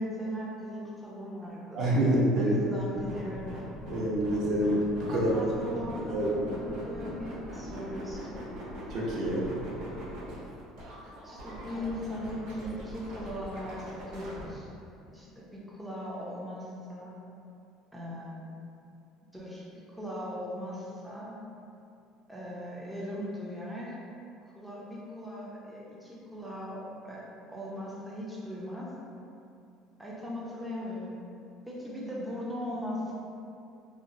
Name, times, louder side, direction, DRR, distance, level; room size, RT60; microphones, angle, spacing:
voice 1, 0.0-1.9 2.4-3.5 5.1-8.6 11.2-14.7 15.1-17.1 17.9-18.4 19.3-19.6 19.9-21.4 22.3-23.9 24.4-27.2 27.5-28.9 30.0-31.1 31.7-33.1, equal, 5° right, -6 dB, 0.4 m, -39 dB
voice 2, 1.7-2.6 3.9-5.3 6.1-6.5 8.9-9.5, right 1 dB, 55° right, -5 dB, 0.6 m, -27 dB
sound 1, 2.8-14.4, equal, 80° right, 0.9 m, -42 dB
3.0 x 2.1 x 2.5 m, 2.6 s
cardioid pair, 130°, 0 cm